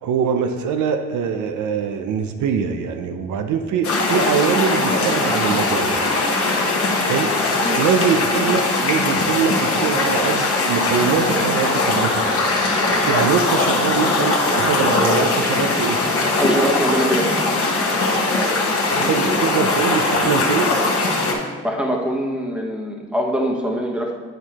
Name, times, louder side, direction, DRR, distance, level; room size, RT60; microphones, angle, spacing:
voice 1, 0.0-6.0 7.0-7.3 7.8-12.2 13.0-16.0 18.9-20.7, right 6 dB, 75° right, 6 dB, 0.6 m, -23 dB
sound 1, 3.8-21.3, left 2 dB, 50° left, 1.3 m, -20 dB
voice 2, 16.4-17.3 17.6-17.7 21.6-24.1, equal, 5° right, 0 dB, 1.0 m, -23 dB
9.1 x 4.5 x 2.9 m, 1.5 s
cardioid pair, 90°, 30 cm